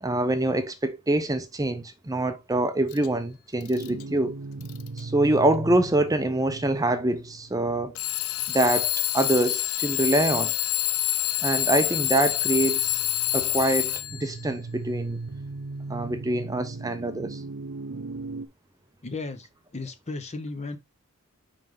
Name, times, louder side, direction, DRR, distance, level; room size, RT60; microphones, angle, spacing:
voice 1, 0.0-4.4 5.0-8.0 8.5-10.5 11.4-13.0 13.3-15.2 15.9-17.4, right 1 dB, 15° right, 0.7 m, -25 dB
Alarm / Clock, 2.9-3.1 3.6-4.0 4.6-5.0 5.9-6.0 8.0-14.4, left 15 dB, 65° left, 0.4 m, -27 dB
sound 1, 3.7-8.9 11.0-18.5, right 3 dB, 60° right, 0.6 m, -38 dB
voice 2, 19.0-20.8, left 3 dB, 30° left, 0.8 m, -35 dB
5.4 x 5.2 x 3.6 m
head